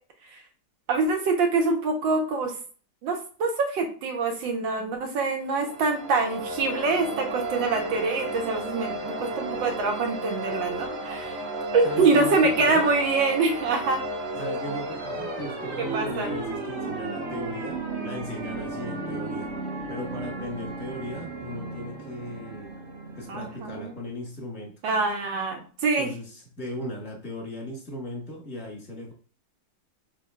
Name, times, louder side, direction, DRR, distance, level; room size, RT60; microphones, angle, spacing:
voice 1, 0.9-2.5 3.0-11.3 11.7-14.0 15.9-16.3 23.3-24.0 24.8-26.1, right 3 dB, 90° right, 3 dB, 1.7 m, -25 dB
sound 1, 5.4-24.1, right 2 dB, 45° right, 1.1 m, -34 dB
voice 2, 11.8-12.9 14.3-19.5 19.9-22.7 23.2-24.7 26.0-29.1, left 1 dB, 5° left, -1 dB, 1.2 m, -37 dB
6.0 x 3.4 x 2.4 m, 0.41 s
omnidirectional pair, 2.0 m